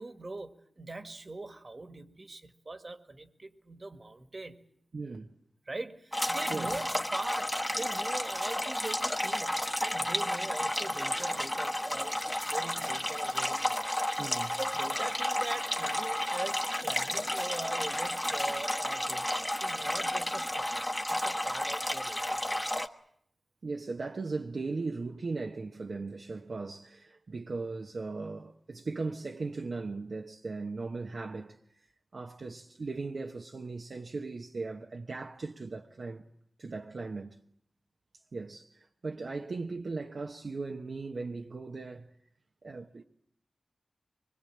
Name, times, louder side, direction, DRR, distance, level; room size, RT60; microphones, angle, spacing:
voice 1, 0.0-4.6 5.7-13.9 14.6-19.3 19.6-22.6, right 2 dB, 45° right, 1.9 m, -42 dB
voice 2, 4.9-5.3 6.5-6.8 14.2-14.5 23.6-31.6 32.1-36.2 36.6-37.4 38.3-42.1 42.6-43.0, right 3 dB, 65° right, 1.1 m, -38 dB
sound 1, 6.1-22.9, left 1 dB, 10° left, 1.4 m, -32 dB
24.5 x 21.5 x 8.7 m
wide cardioid pair, 65°, 0 cm